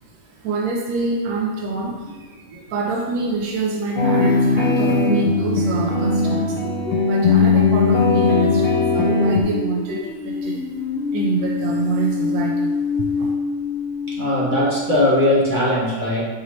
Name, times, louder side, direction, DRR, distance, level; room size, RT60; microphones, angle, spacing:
voice 1, 0.4-6.6 7.0-10.6 11.1-12.7 13.2-13.3, right 4 dB, 75° right, -1 dB, 1.1 m, -26 dB
sound 1, 2.1-2.2 4.1-15.2, left 5 dB, 65° left, 0.7 m, -26 dB
sound 2, 4.0-9.4, left 3 dB, 80° left, 1.1 m, -18 dB
voice 2, 14.2-16.2, left 1 dB, 35° right, -6 dB, 0.9 m, -19 dB
5.0 x 2.8 x 3.1 m, 1.3 s
omnidirectional pair, 1.7 m